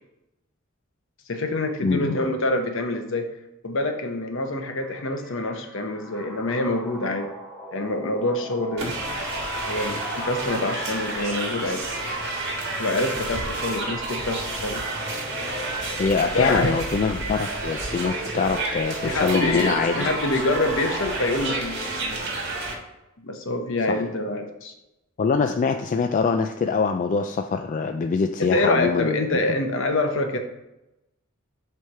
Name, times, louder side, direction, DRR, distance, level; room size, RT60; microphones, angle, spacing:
voice 1, 1.3-3.3 3.6-7.3 7.7-8.9 9.7-11.8 12.8-14.8 16.3-16.7 19.0-22.0 23.2-24.7 28.4-30.4, left 2 dB, 65° left, 5 dB, 0.9 m, -26 dB
sound 1, 4.6-22.6, left 1 dB, 5° right, 0.9 m, -38 dB
sound 2, 8.8-22.7, right 2 dB, 55° right, 1.5 m, -30 dB
voice 2, 16.0-20.1 23.9-24.0 25.2-29.3, left 5 dB, 40° left, 6 dB, 0.3 m, -24 dB
7.6 x 3.3 x 5.5 m, 0.92 s
head